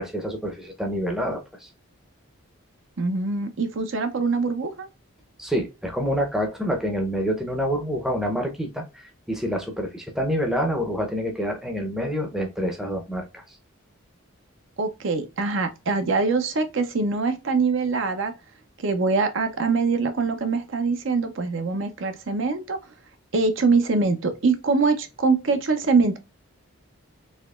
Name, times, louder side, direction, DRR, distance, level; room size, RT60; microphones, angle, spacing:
voice 1, 0.0-1.7 5.4-13.6, equal, ahead, 0.6 m, -27 dB
voice 2, 3.0-4.9 14.8-18.3 18.8-22.8 23.3-26.2, right 4 dB, 60° right, 0.6 m, -23 dB
4.2 x 2.8 x 2.3 m
head